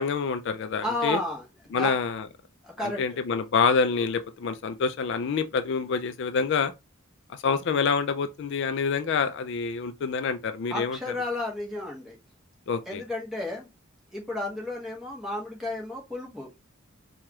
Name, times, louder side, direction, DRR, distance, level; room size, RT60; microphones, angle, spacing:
voice 1, 0.0-1.2 1.7-2.3 2.8-6.7 7.3-11.0 12.7-13.0, left 5 dB, 55° left, 0.3 m, -27 dB
voice 2, 0.8-2.0 2.6-3.0 10.7-12.2 12.9-13.7 14.1-16.5, left 1 dB, ahead, 1.2 m, -32 dB
4.7 x 2.3 x 2.9 m
head